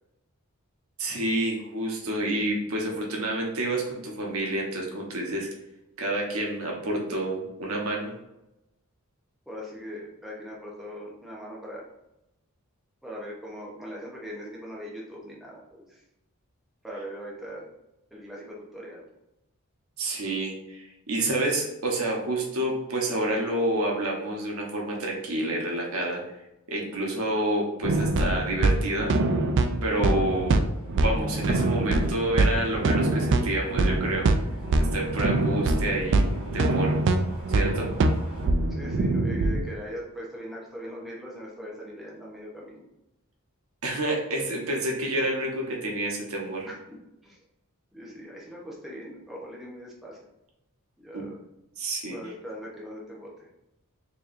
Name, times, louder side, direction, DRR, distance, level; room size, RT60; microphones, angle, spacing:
voice 1, 1.0-5.5 6.0-8.1 20.0-26.3 26.7-29.1 29.8-30.6 31.0-34.3 34.8-37.0 37.5-37.9 43.8-46.7 51.1-51.3 51.8-52.1, right 1 dB, 75° right, -1 dB, 1.0 m, -29 dB
voice 2, 9.5-11.9 13.0-16.0 16.8-17.7 18.1-19.0 38.7-42.8 46.7-46.8 47.2-47.4 47.9-50.2 51.0-51.4 52.1-53.5, equal, ahead, -5 dB, 0.8 m, -40 dB
sound 1, 27.8-38.5, equal, 25° right, 1.0 m, -42 dB
sound 2, 27.8-39.7, right 2 dB, 55° right, 0.4 m, -24 dB
4.6 x 2.9 x 2.6 m, 0.90 s
head